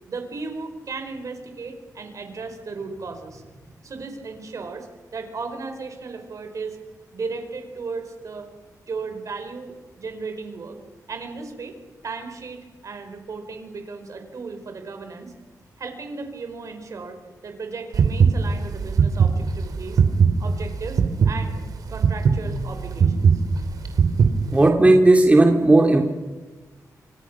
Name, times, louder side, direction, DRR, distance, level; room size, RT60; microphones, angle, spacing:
voice 1, 0.1-4.9 5.1-6.8 7.1-8.5 8.9-10.8 11.1-11.7 12.0-15.3 15.8-20.0 20.4-21.6 21.9-23.3, right 4 dB, 60° right, 6 dB, 4.9 m, -35 dB
sound 1, 17.9-24.7, right 6 dB, 80° right, 3.1 m, -19 dB
voice 2, 24.5-26.0, right 2 dB, 20° right, 2 dB, 2.8 m, -14 dB
29.0 x 25.0 x 6.2 m, 1.2 s
cardioid pair, 90°, 6 cm